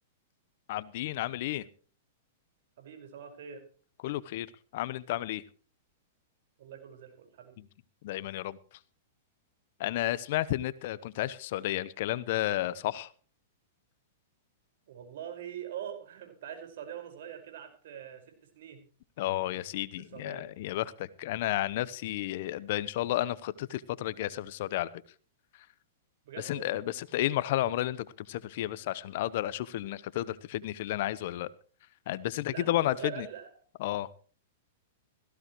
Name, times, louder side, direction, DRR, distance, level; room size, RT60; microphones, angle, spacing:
voice 1, 0.7-1.7 4.0-4.5 4.7-5.4 8.0-8.6 9.8-13.1 19.2-24.9 26.4-31.5 32.1-33.3 33.8-34.1, left 14 dB, 60° left, 18 dB, 0.8 m, -32 dB
voice 2, 2.8-3.6 6.6-7.6 14.9-18.8 20.0-20.4 26.2-26.8 32.5-33.5, right 9 dB, 65° right, 5 dB, 5.0 m, -43 dB
17.5 x 15.0 x 3.1 m, 0.41 s
hypercardioid pair, 115°, 0 cm